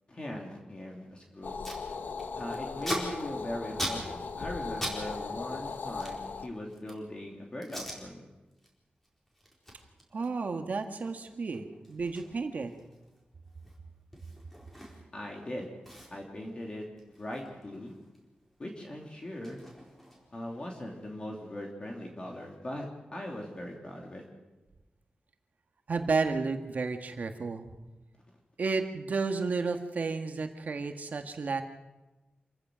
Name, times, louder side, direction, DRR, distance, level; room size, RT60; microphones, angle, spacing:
voice 1, 0.1-1.5 2.4-8.3 15.1-15.7 16.1-16.9 17.2-17.9 18.6-19.6 20.3-24.3, left 1 dB, 30° left, 0 dB, 2.9 m, -40 dB
Packing tape duct tape, 1.1-1.2 1.4-1.8 2.1-5.0 5.2-7.1 7.6-8.0 8.4-8.7 9.0-15.2 15.5-15.6 15.8-18.2 18.5-20.5, equal, 10° left, 4.4 m, -41 dB
sound 1, 1.4-6.5, left 4 dB, 70° left, 1.1 m, -38 dB
voice 2, 10.1-12.7 25.9-27.7 28.6-31.6, right 4 dB, 55° right, 5 dB, 1.8 m, -32 dB
27.0 x 15.0 x 6.3 m, 1.1 s
wide cardioid pair, 150°, 3 cm